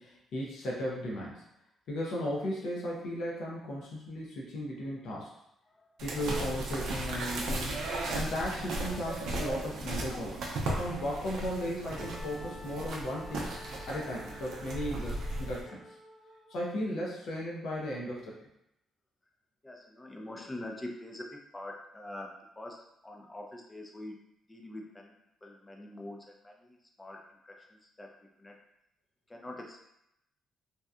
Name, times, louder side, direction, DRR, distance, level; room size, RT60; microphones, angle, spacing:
voice 1, 0.0-1.4 1.9-5.3 6.0-7.8 8.1-13.5 13.9-15.8 16.5-18.4, equal, 75° left, -3 dB, 0.6 m, -36 dB
sound 1, 6.0-15.6, right 1 dB, 80° right, 0.5 m, -36 dB
Wind instrument woodwind instrument, 11.9-16.5, left 1 dB, 25° right, 0.9 m, -49 dB
voice 2, 19.6-24.2 24.5-25.1 25.4-28.1 28.4-28.6 29.3-29.8, left 1 dB, 15° left, 1 dB, 0.5 m, -45 dB
2.7 x 2.2 x 2.4 m, 0.81 s
cardioid pair, 90°, 0 cm